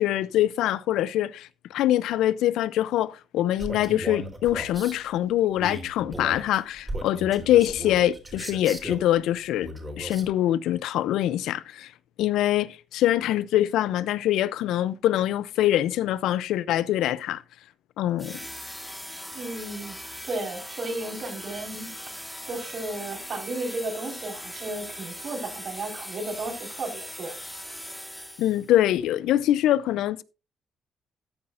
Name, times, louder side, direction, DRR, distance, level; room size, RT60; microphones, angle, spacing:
voice 1, 0.0-9.7 10.0-11.9 12.2-17.4 18.0-18.4 28.4-30.2, left 13 dB, 85° left, 0.5 m, -24 dB
Male speech man speaking, 3.6-5.0 5.6-9.1 9.6-10.3, right 1 dB, 20° right, 3.7 m, -36 dB
sound 1, 18.2-28.8, equal, ahead, 2.2 m, -40 dB
voice 2, 19.3-20.0 20.2-21.9 22.4-27.3, right 2 dB, 55° right, 4.6 m, -34 dB
14.0 x 9.6 x 2.5 m
cardioid pair, 90°, 0 cm